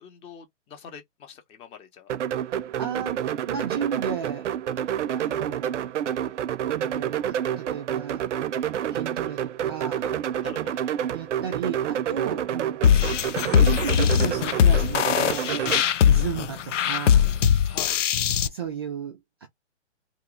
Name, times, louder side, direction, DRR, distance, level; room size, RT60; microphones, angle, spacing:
voice 1, 0.0-2.1 10.0-10.1 10.4-10.8 17.6-18.0, left 7 dB, 15° left, 0.7 m, -44 dB
sound 1, 2.1-15.8, right 10 dB, 80° right, 0.5 m, -29 dB
voice 2, 2.5-4.5 5.2-5.9 6.7-8.2 8.9-10.1 11.1-12.8 13.4-17.3 18.5-19.5, right 8 dB, 25° right, 0.4 m, -34 dB
sound 2, 12.8-18.5, left 8 dB, 85° left, 0.6 m, -20 dB
2.9 x 2.2 x 3.6 m
hypercardioid pair, 140°, 36 cm